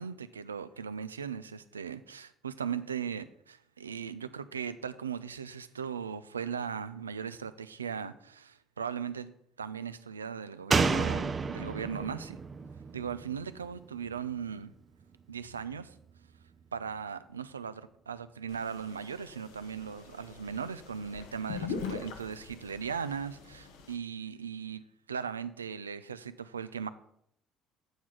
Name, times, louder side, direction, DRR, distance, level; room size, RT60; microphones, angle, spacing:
voice 1, 0.0-9.3 9.6-12.4 12.9-14.7 15.3-15.9 16.7-26.9, right 7 dB, 90° right, 0.3 m, -38 dB
Slam, 10.7-14.2 14.5-14.6, right 4 dB, 35° right, 0.5 m, -31 dB
sound 1, 18.5-23.9, left 5 dB, 75° left, 0.9 m, -42 dB
7.9 x 4.7 x 5.9 m
hypercardioid pair, 55°, 0 cm